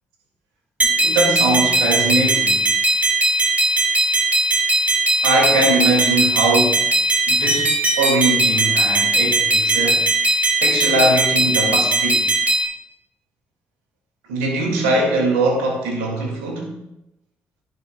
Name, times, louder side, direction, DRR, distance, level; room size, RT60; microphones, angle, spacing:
sound 1, 0.8-12.6, right 2 dB, 20° right, 2.7 m, -18 dB
voice 1, 0.8-2.6 5.2-6.9 7.3-10.0 10.6-12.3 14.3-16.8, right 2 dB, 85° right, 0 dB, 2.2 m, -21 dB
11.0 x 11.0 x 2.3 m, 0.87 s
hypercardioid pair, 50°, 6 cm